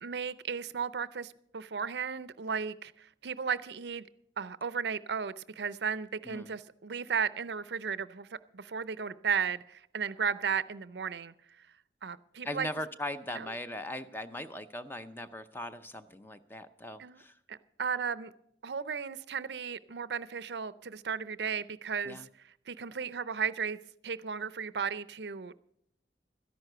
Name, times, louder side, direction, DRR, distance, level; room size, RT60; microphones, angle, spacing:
voice 1, 0.0-4.0 4.4-11.3 12.0-12.7 13.3-13.5 17.0-17.2 17.5-18.3 18.6-22.2 22.7-23.8 24.0-25.6, right 6 dB, 70° right, 0.6 m, -35 dB
voice 2, 12.4-17.4 22.0-22.3, left 1 dB, 10° left, 0.6 m, -39 dB
13.5 x 11.0 x 6.6 m
head